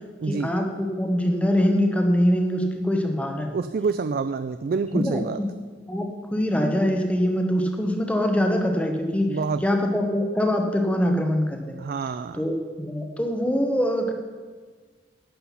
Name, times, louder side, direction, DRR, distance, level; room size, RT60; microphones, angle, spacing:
voice 1, 0.3-3.5 4.9-5.5 5.9-11.7 12.3-14.1, equal, 5° left, 3 dB, 1.0 m, -23 dB
voice 2, 3.5-5.4 9.3-9.6 11.8-12.4, right 4 dB, 50° right, 11 dB, 0.3 m, -27 dB
11.5 x 7.9 x 5.7 m, 1.5 s
head